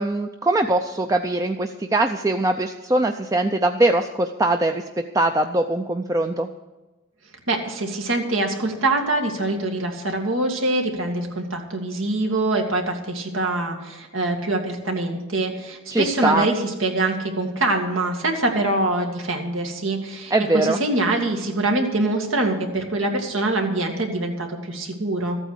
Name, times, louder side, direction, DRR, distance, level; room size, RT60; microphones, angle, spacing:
voice 1, 0.0-4.8 5.1-6.5 15.9-16.5 20.3-20.8, right 2 dB, 15° right, 5 dB, 0.4 m, -21 dB
voice 2, 7.5-25.4, right 2 dB, 85° right, 2 dB, 2.2 m, -24 dB
14.0 x 8.9 x 6.6 m, 1.1 s
head